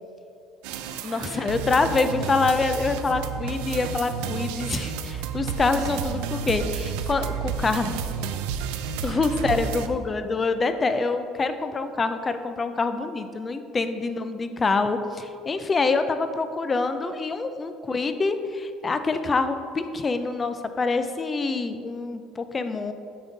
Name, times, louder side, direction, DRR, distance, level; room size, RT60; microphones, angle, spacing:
sound 1, 0.6-9.9, right 7 dB, 85° right, 0.4 m, -31 dB
voice 1, 1.0-8.0 9.0-22.9, left 3 dB, 25° left, 9 dB, 0.4 m, -26 dB
8.6 x 3.7 x 3.9 m, 2.4 s
supercardioid pair, 105°, 0 cm